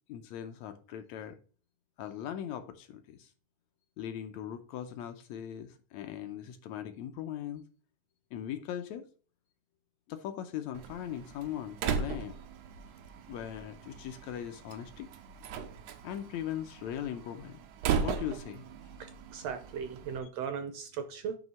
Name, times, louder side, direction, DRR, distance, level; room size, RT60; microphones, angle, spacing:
voice 1, 0.1-1.4 2.0-3.3 4.0-7.6 8.3-9.1 10.1-12.4 13.3-15.1 16.0-17.6 18.0-18.7, left 10 dB, 75° left, 1.8 m, -39 dB
Slam, 10.7-20.2, right 6 dB, 90° right, 2.3 m, -38 dB
voice 2, 19.0-21.4, right 7 dB, 75° right, 1.6 m, -38 dB
9.2 x 3.2 x 6.3 m
omnidirectional pair, 3.5 m